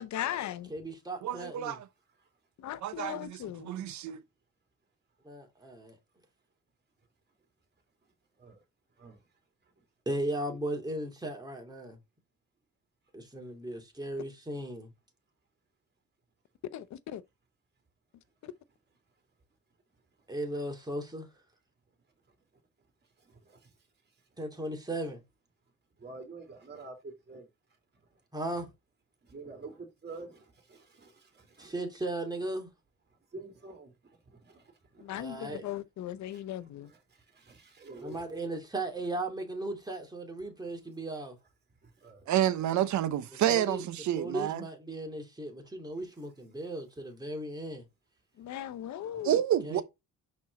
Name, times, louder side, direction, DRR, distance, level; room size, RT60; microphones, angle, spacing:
voice 1, 0.0-0.7 2.6-3.7 14.2-14.3 16.7-17.2 18.4-18.5 35.0-36.9 48.4-49.4, left 11 dB, 65° left, 0.8 m, -38 dB
voice 2, 0.7-1.8 5.2-6.0 10.1-12.0 13.1-14.9 20.3-21.3 24.4-25.2 28.3-28.7 31.6-32.7 35.1-35.7 38.0-41.4 43.5-43.8 44.2-47.8 49.6-49.8, right 1 dB, 15° right, 2.6 m, -36 dB
voice 3, 1.2-1.8 2.8-4.2 42.3-44.6 49.2-49.8, right 11 dB, 70° right, 0.9 m, -29 dB
voice 4, 23.2-23.7 26.0-27.5 28.1-28.2 29.2-31.8 33.1-35.6 36.3-38.4 41.8-42.3 49.1-49.3, right 3 dB, 35° right, 2.6 m, -49 dB
6.0 x 4.4 x 4.1 m
cardioid pair, 90°, 30 cm